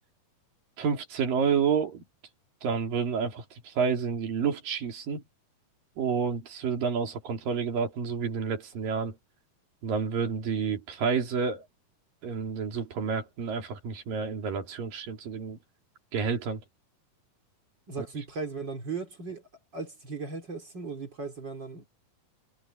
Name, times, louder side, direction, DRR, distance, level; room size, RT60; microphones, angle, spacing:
voice 1, 0.8-2.0 2.6-5.2 6.0-9.2 9.8-11.6 12.2-15.6 16.1-16.6 18.0-18.1, right 6 dB, 70° right, 4.8 m, -29 dB
voice 2, 17.9-19.5 19.7-21.9, right 4 dB, 30° right, 3.4 m, -37 dB
omnidirectional pair, 4.1 m